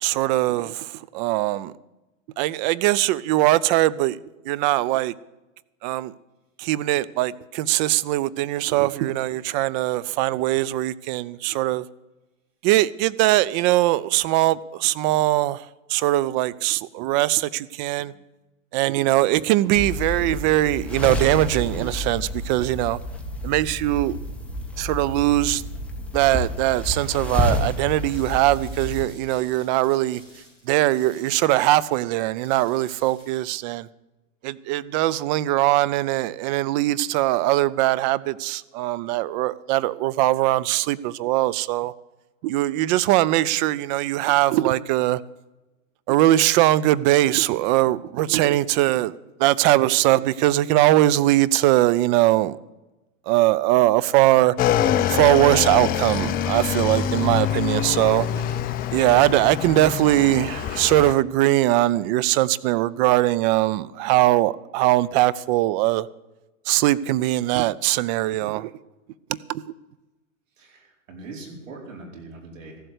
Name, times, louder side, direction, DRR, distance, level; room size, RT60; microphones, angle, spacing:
voice 1, 0.0-1.7 2.4-4.2 4.5-5.1 5.8-6.1 6.6-11.8 12.6-15.6 15.9-18.1 18.7-23.0 23.4-24.2 24.8-25.6 26.1-30.2 30.7-33.9 34.4-41.9 42.4-45.2 46.1-49.1 49.4-52.6 53.3-54.5 55.1-58.3 58.9-66.1 66.7-68.7 69.3-69.6, right 16 dB, 35° right, 0.5 m, -21 dB
sound 1, 19.8-29.0, left 1 dB, 5° left, 1.6 m, -30 dB
sound 2, 28.0-33.6, equal, 15° right, 5.5 m, -51 dB
Motorcycle / Engine, 54.6-61.1, left 9 dB, 25° left, 0.6 m, -25 dB
voice 2, 70.6-72.8, right 3 dB, 75° right, 4.8 m, -41 dB
14.5 x 8.0 x 8.0 m
hypercardioid pair, 120°, 39 cm